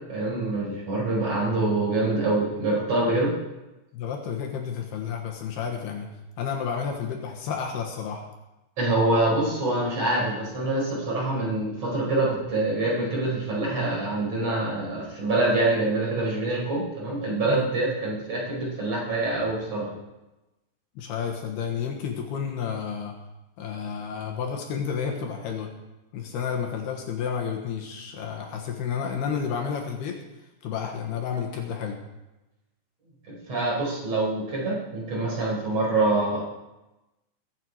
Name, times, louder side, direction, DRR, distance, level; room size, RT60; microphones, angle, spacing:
voice 1, 0.1-3.3 8.8-19.9 33.3-36.4, right 2 dB, 35° right, -4 dB, 5.8 m, -25 dB
voice 2, 3.9-6.1 6.4-8.2 17.3-17.7 21.0-23.1 23.6-25.7 26.1-30.2 30.6-32.0, left 7 dB, 70° left, 1 dB, 3.2 m, -31 dB
21.5 x 8.8 x 4.7 m, 1.0 s
omnidirectional pair, 5.1 m